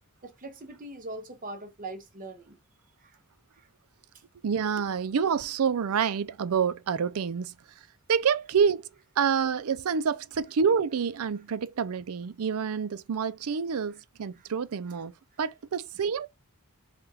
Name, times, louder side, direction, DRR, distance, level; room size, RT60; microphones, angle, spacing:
voice 1, 0.2-2.6 3.0-3.2 3.5-3.7 14.3-14.5, right 2 dB, 40° right, 0.9 m, -41 dB
voice 2, 4.4-7.5 8.1-8.9 9.2-16.3, right 6 dB, 75° right, 0.4 m, -27 dB
3.5 x 2.3 x 4.3 m
head